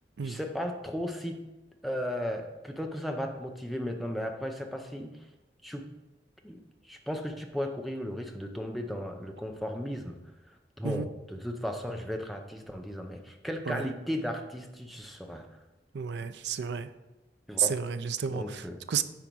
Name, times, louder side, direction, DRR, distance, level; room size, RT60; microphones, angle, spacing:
voice 1, 0.2-1.4 1.8-5.1 5.6-5.9 6.4-6.6 6.9-10.2 10.8-15.5 17.5-17.7 18.3-18.8, equal, ahead, 3 dB, 0.6 m, -35 dB
voice 2, 15.9-16.9 17.6-19.0, right 7 dB, 80° right, 12 dB, 0.5 m, -31 dB
9.0 x 4.9 x 4.6 m, 1.1 s
head